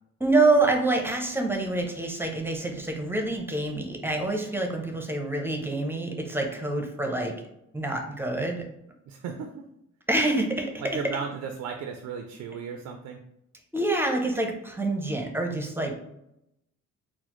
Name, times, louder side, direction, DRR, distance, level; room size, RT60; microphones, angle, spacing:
voice 1, 0.2-7.3 7.7-8.6 10.1-10.7 13.7-16.0, right 2 dB, 10° right, 2 dB, 0.6 m, -26 dB
voice 2, 9.1-9.7 10.9-13.2, right 6 dB, 70° right, 5 dB, 0.4 m, -35 dB
4.1 x 2.1 x 3.0 m, 0.82 s
cardioid pair, 90°, 30 cm